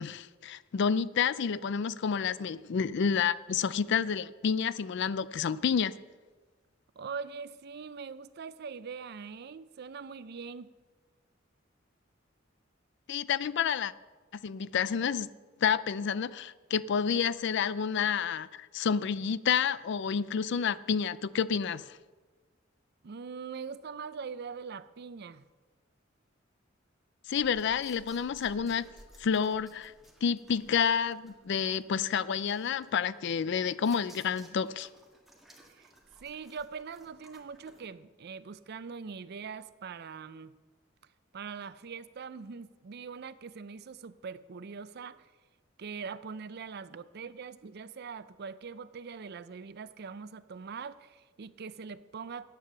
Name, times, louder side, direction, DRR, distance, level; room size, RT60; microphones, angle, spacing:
voice 1, 0.0-5.9 13.1-13.9 14.4-15.3 15.6-22.0 27.3-28.9 29.2-29.9 30.2-34.9, left 7 dB, 60° left, 0.4 m, -29 dB
voice 2, 7.0-10.7 23.0-25.4 35.7-35.9 36.2-40.5 41.3-45.3 45.8-52.4, right 5 dB, 55° right, 0.5 m, -42 dB
sound 1, 27.3-37.9, right 1 dB, ahead, 1.6 m, -58 dB
10.0 x 9.1 x 6.6 m
head